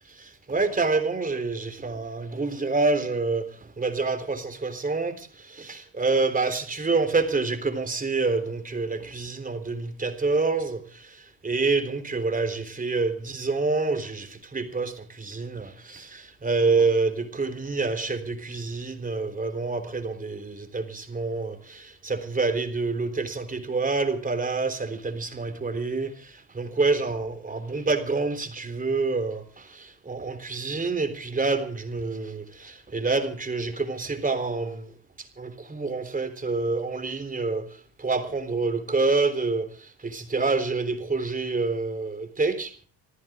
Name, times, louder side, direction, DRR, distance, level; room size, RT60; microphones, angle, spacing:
voice 1, 0.1-42.8, right 3 dB, 25° right, 3.7 m, -27 dB
26.0 x 14.0 x 3.7 m
supercardioid pair, 70°, 33 cm